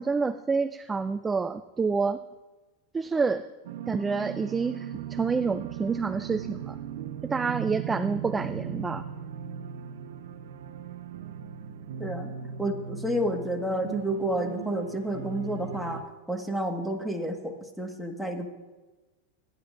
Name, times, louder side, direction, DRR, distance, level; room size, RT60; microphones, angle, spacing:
voice 1, 0.0-2.2 2.9-3.5 3.9-6.8 7.2-9.0, right 4 dB, 15° right, 13 dB, 0.4 m, -28 dB
sound 1, 3.6-16.0, right 8 dB, 75° right, 0.8 m, -38 dB
voice 2, 12.0-12.3 12.6-16.0 16.3-18.5, right 1 dB, ahead, 2 dB, 1.6 m, -30 dB
23.0 x 10.5 x 2.6 m, 1.2 s
hypercardioid pair, 110°, 0 cm